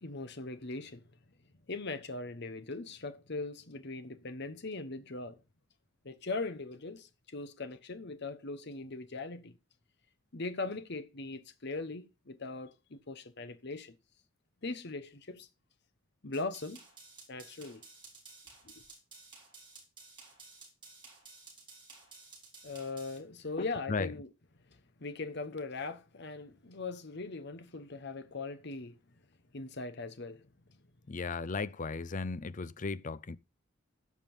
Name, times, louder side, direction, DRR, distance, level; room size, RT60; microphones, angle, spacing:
voice 1, 0.0-1.1 1.7-5.4 6.0-9.6 10.3-13.9 14.6-15.5 16.2-16.8 17.3-17.8 22.6-24.3 25.0-29.0 29.5-30.5, left 3 dB, 55° left, 1.1 m, -40 dB
sound 1, 16.3-23.2, right 4 dB, 25° right, 3.9 m, -54 dB
voice 2, 23.6-24.1 31.1-33.4, left 4 dB, 40° left, 0.5 m, -36 dB
14.5 x 5.3 x 5.4 m
head